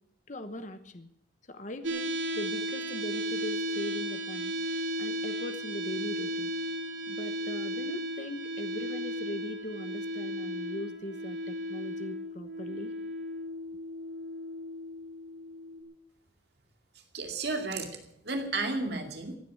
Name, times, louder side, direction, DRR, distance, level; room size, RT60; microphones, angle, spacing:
voice 1, 0.3-1.1 1.5-4.5 5.0-6.5 7.1-12.9, left 1 dB, 40° left, 9 dB, 1.0 m, -40 dB
sound 1, 1.8-15.8, equal, 90° right, 2.6 m, -35 dB
voice 2, 17.1-19.4, right 3 dB, 60° right, 4 dB, 2.3 m, -33 dB
15.5 x 9.2 x 8.2 m, 0.73 s
head